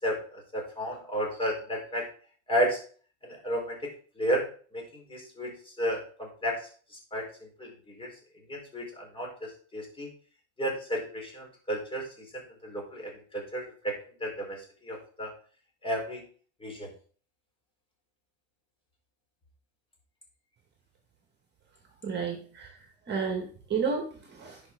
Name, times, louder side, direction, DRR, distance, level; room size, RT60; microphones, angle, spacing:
voice 1, 0.0-2.1 2.5-2.8 3.2-3.9 4.2-4.4 4.7-6.7 7.1-7.3 7.6-8.1 8.5-10.1 10.6-13.9 14.2-15.3 15.8-16.2 16.6-16.9, equal, 15° left, 0 dB, 4.3 m, -32 dB
voice 2, 22.0-22.7 23.1-24.6, right 5 dB, 30° right, 2 dB, 2.1 m, -31 dB
10.5 x 5.6 x 3.8 m, 0.43 s
supercardioid pair, 120°, 35 cm